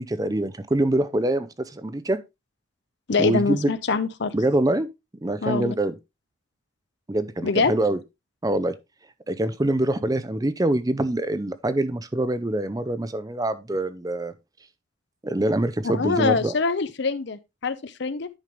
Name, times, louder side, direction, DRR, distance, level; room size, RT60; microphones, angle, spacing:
voice 1, 0.0-2.2 3.2-3.7 4.3-4.9 5.2-5.9 7.1-8.0 8.4-8.8 9.3-14.3 15.2-16.5, right 1 dB, 20° right, 0.5 m, -24 dB
voice 2, 3.1-4.3 5.4-5.7 7.4-7.7 15.9-18.3, left 4 dB, 55° left, 0.6 m, -24 dB
10.5 x 5.4 x 3.2 m
head